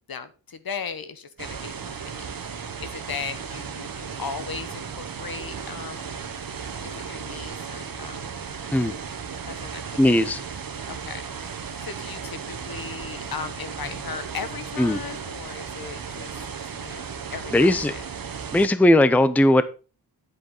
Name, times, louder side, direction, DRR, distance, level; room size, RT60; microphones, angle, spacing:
voice 1, 0.1-6.2 6.8-8.4 8.8-9.0 9.4-10.0 10.9-16.5 16.8-18.0, left 6 dB, 60° left, 1.2 m, -37 dB
sound 1, 1.4-18.7, right 6 dB, 60° right, 1.3 m, -35 dB
voice 2, 10.0-10.4 14.8-15.0 17.5-17.9 18.5-19.6, left 1 dB, 5° left, 0.6 m, -18 dB
9.7 x 7.8 x 3.9 m
wide cardioid pair, 105°, 40 cm